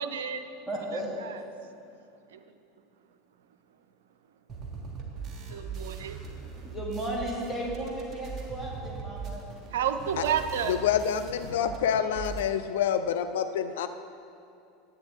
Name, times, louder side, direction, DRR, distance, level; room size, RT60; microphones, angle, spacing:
voice 1, 0.0-0.5 1.2-1.4 2.3-2.4 5.5-6.2 9.7-10.8, right 8 dB, 70° right, 9 dB, 0.5 m, -30 dB
voice 2, 0.7-1.1 6.6-9.4, right 1 dB, 10° left, -4 dB, 2.1 m, -34 dB
sound 1, 4.5-11.8 12.0-12.5, right 5 dB, 30° right, 1.4 m, -40 dB
voice 3, 10.7-13.9, left 8 dB, 65° left, 9 dB, 0.3 m, -27 dB
10.5 x 7.8 x 3.4 m, 2.5 s
figure-of-eight pair, 80°, 0 cm